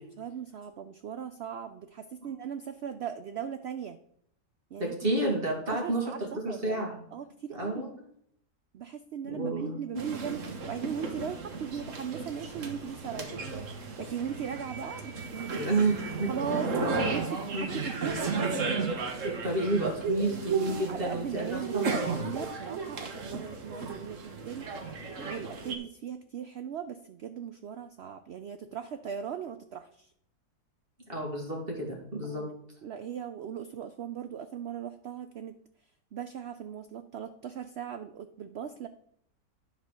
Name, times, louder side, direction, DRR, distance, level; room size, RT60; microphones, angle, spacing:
voice 1, 0.2-4.0 4.7-5.1 5.7-6.9 7.1-7.9 8.7-13.4 14.0-15.7 16.3-16.7 17.1-18.7 20.9-24.7 25.2-30.1 32.3-32.5 32.8-35.5 36.1-38.9, right 8 dB, 90° right, 10 dB, 0.5 m, -38 dB
voice 2, 4.8-7.0 7.5-7.9 9.2-10.0 15.5-17.0 17.5-17.7 19.2-22.5 31.1-32.4, right 2 dB, 35° right, -1 dB, 2.1 m, -31 dB
sound 1, 10.0-25.8, right 4 dB, 55° right, 1.4 m, -34 dB
10.5 x 4.1 x 6.2 m, 0.69 s
omnidirectional pair, 1.7 m